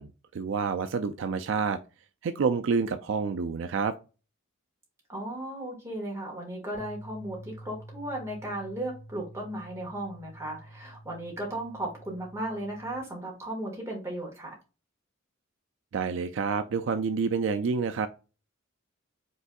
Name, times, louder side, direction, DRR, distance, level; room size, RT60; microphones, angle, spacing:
voice 1, 0.0-1.8 2.2-3.9 15.9-18.1, right 5 dB, 60° right, 8 dB, 0.3 m, -28 dB
voice 2, 5.1-14.5, right 1 dB, 15° right, -1 dB, 1.5 m, -36 dB
sound 1, 6.7-13.0, right 1 dB, 5° left, 1.4 m, -48 dB
5.3 x 3.3 x 2.3 m, 0.31 s
head